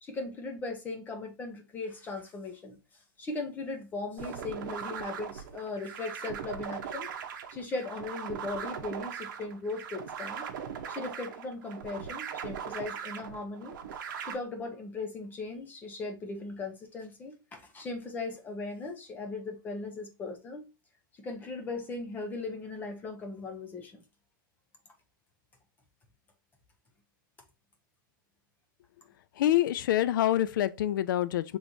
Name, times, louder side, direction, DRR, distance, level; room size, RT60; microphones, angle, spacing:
voice 1, 0.0-2.8 3.2-7.1 7.5-10.5 10.9-13.7 14.2-20.7 21.2-24.0, left 3 dB, 15° left, 0.7 m, -38 dB
sound 1, 4.2-14.3, right 7 dB, 65° right, 0.8 m, -39 dB
voice 2, 29.4-31.6, left 12 dB, 70° left, 0.4 m, -26 dB
6.0 x 3.1 x 2.6 m
supercardioid pair, 155°, 11 cm